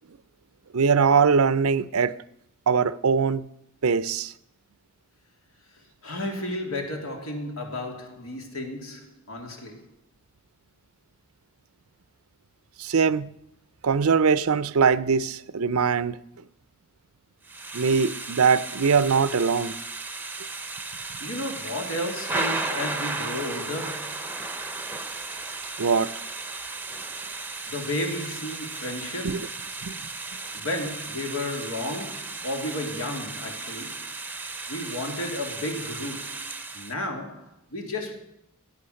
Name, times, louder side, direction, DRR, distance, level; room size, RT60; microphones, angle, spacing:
voice 1, 0.7-2.1 2.7-3.5 3.8-4.3 12.8-13.3 13.8-16.2 17.7-19.8 25.8-26.1 29.2-29.5 29.8-29.9, right 5 dB, 90° right, 0.6 m, -22 dB
voice 2, 6.0-9.9 21.2-24.2 27.7-29.6 30.5-34.1 34.7-36.4 36.7-38.2, left 1 dB, 75° left, 2.8 m, -33 dB
Thunder / Rain, 17.4-36.9, right 3 dB, 10° right, 0.8 m, -35 dB
17.5 x 8.9 x 6.4 m
head